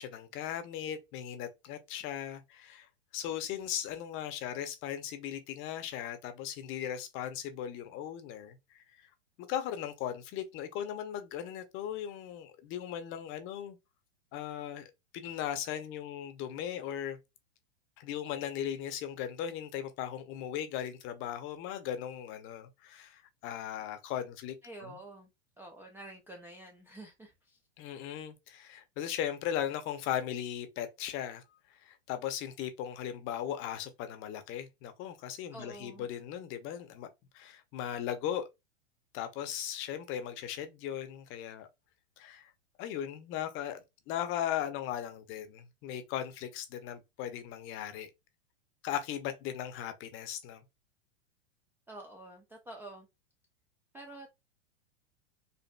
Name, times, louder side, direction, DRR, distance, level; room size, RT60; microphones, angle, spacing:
voice 1, 0.0-9.1 9.4-13.8 14.3-17.2 18.0-25.0 27.8-31.4 31.7-37.1 37.3-38.5 39.1-41.7 42.2-42.5 42.8-43.8 44.1-48.1 48.8-50.6, left 10 dB, 35° left, 0.7 m, -38 dB
voice 2, 24.6-25.3 25.6-27.6 35.5-36.1 51.9-53.1 53.9-54.4, right 1 dB, 5° right, 0.3 m, -48 dB
4.1 x 2.5 x 2.2 m
hypercardioid pair, 110°, 35 cm